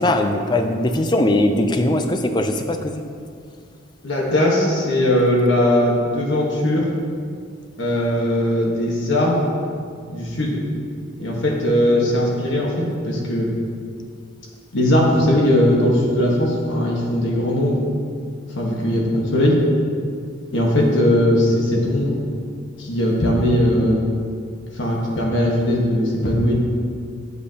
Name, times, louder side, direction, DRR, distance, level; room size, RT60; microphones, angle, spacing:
voice 1, 0.0-3.0, left 1 dB, 20° left, 6 dB, 0.4 m, -20 dB
voice 2, 4.0-6.8 7.8-9.5 10.1-10.6 11.2-13.5 14.7-17.8 18.5-19.5 20.5-22.2 22.8-24.0 24.7-26.5, left 1 dB, 65° left, -2 dB, 1.3 m, -19 dB
8.3 x 7.7 x 2.8 m, 2.2 s
head